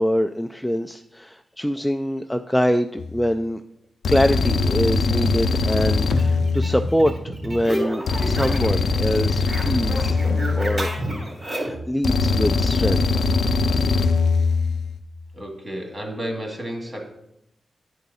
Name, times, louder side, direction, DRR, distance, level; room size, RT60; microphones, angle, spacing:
voice 1, 0.0-3.6 4.1-7.1 7.4-10.2 10.5-10.9 11.5-13.1, equal, 5° left, 7 dB, 0.3 m, -24 dB
sound 1, 3.0-3.3 4.0-7.3 8.1-11.3 12.0-15.0, left 4 dB, 85° left, 0.5 m, -22 dB
sound 2, 6.1-8.8 9.1-11.9, right 1 dB, 40° right, 3.3 m, -30 dB
voice 2, 15.3-17.1, right 1 dB, 25° right, 2 dB, 2.0 m, -32 dB
10.5 x 4.6 x 4.1 m, 0.81 s
cardioid pair, 70°, 0 cm